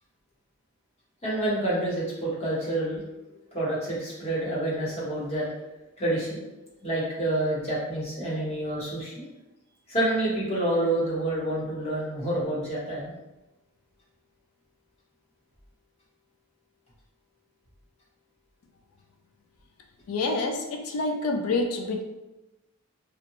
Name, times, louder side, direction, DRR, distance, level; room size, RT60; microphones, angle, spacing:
voice 1, 1.2-3.0 3.5-5.5 6.0-6.4 6.8-9.2 9.9-13.1, right 1 dB, 30° left, -6 dB, 0.9 m, -28 dB
voice 2, 20.1-22.0, left 3 dB, 75° left, 4 dB, 0.3 m, -27 dB
2.6 x 2.1 x 2.9 m, 1.0 s
head